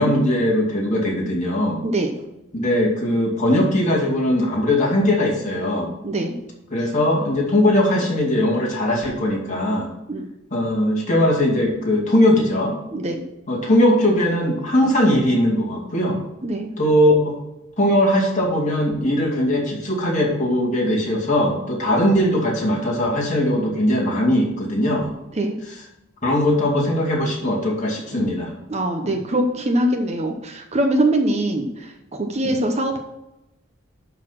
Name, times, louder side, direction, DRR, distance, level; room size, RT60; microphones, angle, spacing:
voice 1, 0.0-1.8 2.5-5.9 6.7-9.9 10.5-12.7 13.5-16.2 16.8-17.3 17.8-25.1 26.2-28.5 29.0-29.2 32.4-32.5, left 1 dB, 40° left, -3 dB, 2.5 m, -20 dB
voice 2, 6.0-6.3 10.1-10.3 12.9-13.2 16.4-16.7 25.3-25.6 28.7-33.0, right 1 dB, 35° right, 4 dB, 0.8 m, -22 dB
11.0 x 4.1 x 5.9 m, 0.92 s
head